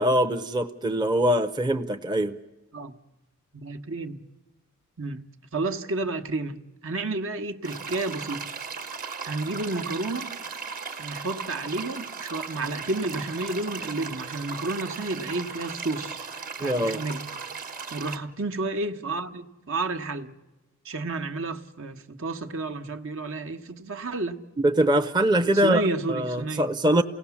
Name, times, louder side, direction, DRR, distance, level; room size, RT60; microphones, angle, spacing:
voice 1, 0.0-2.4 16.6-17.0 24.6-25.8 26.1-27.0, right 1 dB, 20° right, 0.7 m, -23 dB
voice 2, 3.5-4.2 5.0-5.3 5.5-8.4 9.2-10.3 11.0-16.2 16.6-17.2 17.9-20.3 20.8-24.4 25.6-26.7, right 2 dB, 65° right, 1.2 m, -31 dB
sound 1, 7.6-18.2, right 5 dB, 40° right, 1.3 m, -37 dB
28.5 x 18.0 x 7.1 m
head